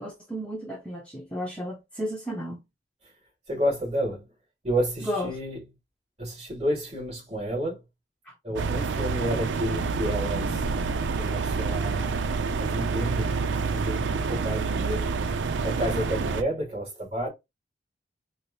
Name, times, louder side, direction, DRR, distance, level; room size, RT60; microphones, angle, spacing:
voice 1, 0.0-2.6 5.1-5.3, equal, 5° left, 0.8 m, -33 dB
voice 2, 3.5-4.3 4.6-5.6 6.2-7.8 8.4-10.7 11.2-13.4 13.7-15.1 15.6-17.3, equal, 35° right, 2.5 m, -30 dB
sound 1, 8.6-16.4, right 4 dB, 85° right, 0.4 m, -28 dB
4.9 x 2.0 x 2.7 m
head